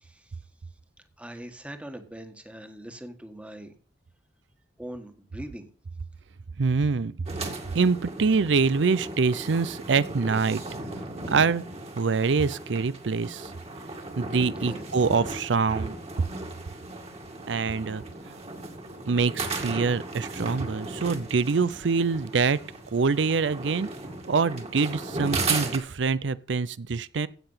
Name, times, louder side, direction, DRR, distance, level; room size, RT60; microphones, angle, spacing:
voice 1, 1.2-3.7 4.8-5.7 14.5-14.8 20.5-20.8, right 1 dB, 5° right, 1.5 m, -41 dB
voice 2, 6.6-10.6 11.3-11.6 12.0-13.5 14.2-15.9 17.5-18.0 19.1-22.6 22.9-23.9 24.3-27.3, right 4 dB, 80° right, 0.5 m, -25 dB
sound 1, 7.3-25.8, right 3 dB, 35° right, 2.2 m, -36 dB
16.0 x 6.9 x 5.6 m
head